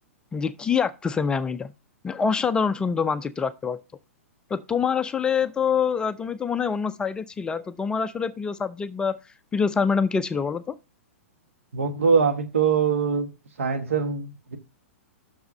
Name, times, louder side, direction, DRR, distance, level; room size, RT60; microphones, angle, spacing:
voice 1, 0.3-1.7 2.0-3.8 4.5-9.2 9.5-10.7, left 6 dB, 10° left, 0.3 m, -25 dB
voice 2, 11.7-13.3 13.6-14.6, right 5 dB, 65° right, 1.2 m, -23 dB
6.2 x 4.7 x 6.2 m
figure-of-eight pair, 105°, 8 cm